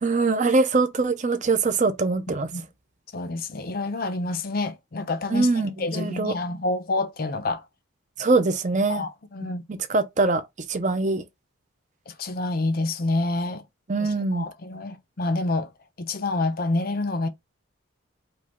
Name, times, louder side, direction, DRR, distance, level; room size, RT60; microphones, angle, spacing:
voice 1, 0.0-2.5 5.3-6.3 8.2-9.0 9.9-10.4 10.7-11.2 13.9-14.5, right 3 dB, 35° right, 0.5 m, -23 dB
voice 2, 3.1-7.6 8.9-9.6 12.1-13.6 14.0-15.7 16.0-17.3, left 2 dB, 45° left, 0.6 m, -28 dB
5.1 x 2.3 x 3.5 m
head